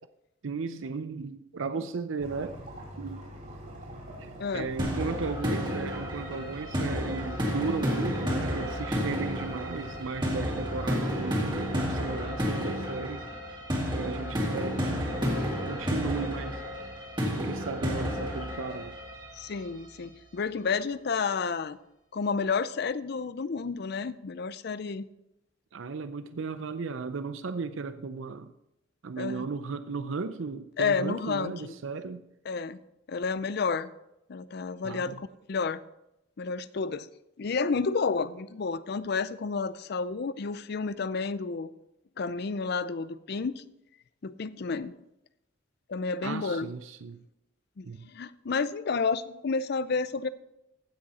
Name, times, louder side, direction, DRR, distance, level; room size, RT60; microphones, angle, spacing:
voice 1, 0.4-2.6 3.0-3.2 4.2-13.3 13.9-15.1 15.7-16.6 17.3-19.0 25.7-28.5 29.0-32.2 34.8-35.2 46.2-47.2 47.8-48.1, right 4 dB, 85° right, 11 dB, 0.6 m, -35 dB
sound 1, 2.2-12.2, equal, 45° right, 4.3 m, -44 dB
voice 2, 4.4-4.7 19.3-21.8 22.1-25.1 29.2-29.4 30.8-31.8 32.4-32.8 33.1-33.9 34.3-35.8 36.4-37.1 37.4-41.7 42.2-43.6 44.2-44.9 45.9-46.7 47.8-47.9 48.1-50.3, left 4 dB, 55° left, 16 dB, 0.5 m, -30 dB
sound 2, 4.8-19.7, equal, 25° right, 2.3 m, -31 dB
15.5 x 6.3 x 4.2 m, 0.86 s
head